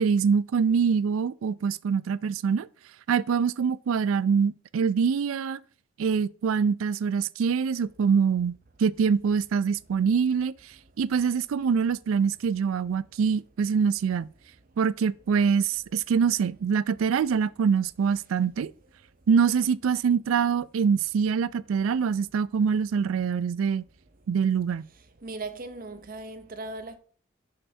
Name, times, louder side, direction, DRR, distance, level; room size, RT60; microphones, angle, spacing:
voice 1, 0.0-2.7 3.1-5.6 6.0-10.5 11.0-14.3 14.8-18.7 19.3-23.8 24.3-24.9, right 6 dB, 85° right, 0.4 m, -24 dB
voice 2, 25.2-27.0, right 2 dB, 45° right, 0.7 m, -38 dB
6.6 x 5.6 x 2.7 m
head